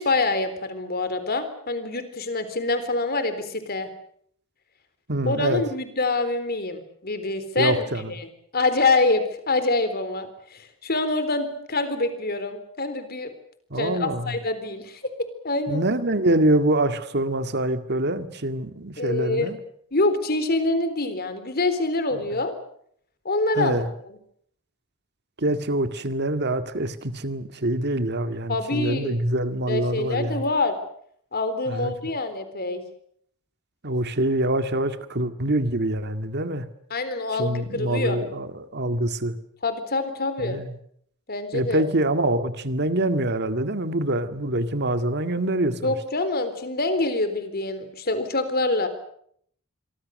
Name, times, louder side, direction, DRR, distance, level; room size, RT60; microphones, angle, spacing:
voice 1, 0.0-3.9 5.2-8.2 8.5-13.3 13.8-15.0 15.4-15.8 19.0-19.5 19.9-22.5 23.2-24.2 28.5-29.2 29.7-30.8 31.3-32.8 36.9-38.2 39.6-40.6 41.3-41.8 45.8-48.9, left 2 dB, 45° left, 10 dB, 3.9 m, -26 dB
voice 2, 5.1-5.6 7.6-8.1 13.7-14.4 15.7-19.6 23.6-23.9 25.4-30.4 31.7-31.9 33.8-36.7 37.4-39.4 40.4-40.7 41.5-45.9, right 1 dB, 50° right, 10 dB, 2.0 m, -25 dB
26.5 x 24.0 x 6.6 m, 0.66 s
head